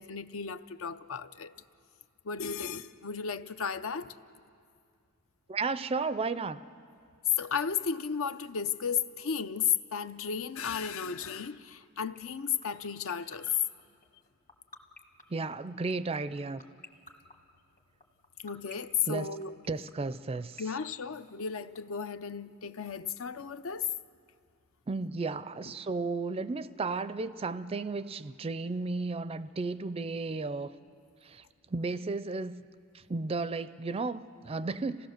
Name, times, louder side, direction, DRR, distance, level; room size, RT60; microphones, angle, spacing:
voice 1, 0.0-1.5 2.2-4.1 7.4-13.6 18.4-19.5 20.6-23.9 25.6-25.7, left 7 dB, 65° left, 0.6 m, -34 dB
voice 2, 5.5-6.6 15.3-16.6 19.1-19.3 19.7-20.6 24.9-30.7 31.2-31.4 31.7-32.6 33.1-35.1, right 3 dB, 25° right, 0.4 m, -33 dB
sound 1, 12.2-21.8, left 2 dB, 35° left, 1.3 m, -48 dB
27.5 x 17.0 x 6.6 m
head